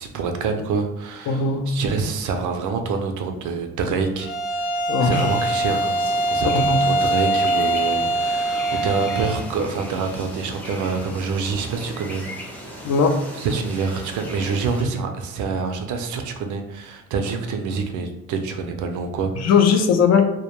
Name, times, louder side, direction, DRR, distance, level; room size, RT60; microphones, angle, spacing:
voice 1, 0.0-4.3 4.6-4.7 5.0-6.0 6.3-12.8 13.4-19.5, right 4 dB, 80° right, 5 dB, 0.5 m, -26 dB
voice 2, 1.3-1.7 4.9-5.3 6.5-6.8 12.8-13.2 19.4-20.2, left 5 dB, 60° left, 4 dB, 0.4 m, -18 dB
Bowed string instrument, 4.2-9.4, right 1 dB, 90° left, 0.8 m, -23 dB
sound 1, 5.1-14.8, equal, 5° left, 0.5 m, -37 dB
2.1 x 2.1 x 2.9 m, 0.86 s
cardioid pair, 90°, 30 cm